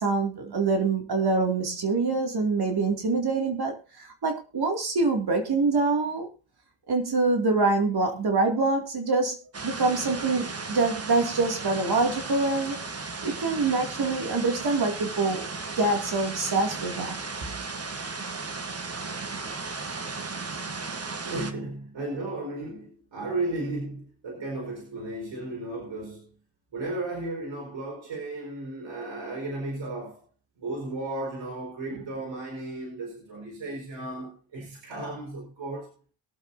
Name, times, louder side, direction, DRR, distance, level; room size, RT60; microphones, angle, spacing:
voice 1, 0.0-6.3 6.9-9.4 9.6-12.8 13.2-15.4 15.8-17.2, right 3 dB, 55° right, 2.6 m, -25 dB
sound 1, 9.5-21.5, right 4 dB, 30° right, 1.4 m, -35 dB
voice 2, 21.2-26.3 26.7-30.2 30.6-35.9, right 2 dB, 80° right, 4.6 m, -34 dB
22.5 x 7.6 x 2.7 m
cardioid pair, 85°, 45 cm